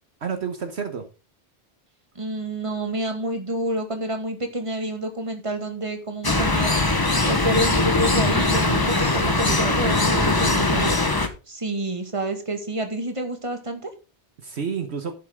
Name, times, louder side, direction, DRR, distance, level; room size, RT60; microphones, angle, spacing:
voice 1, 0.2-1.0 9.0-10.3 14.4-15.1, right 6 dB, 65° right, 6 dB, 1.4 m, -31 dB
voice 2, 2.2-6.8 7.2-11.1 11.5-13.9, right 1 dB, 25° right, 5 dB, 2.0 m, -28 dB
sound 1, 6.2-11.3, left 2 dB, 20° left, 1.1 m, -21 dB
11.0 x 8.3 x 3.7 m, 0.31 s
omnidirectional pair, 1.2 m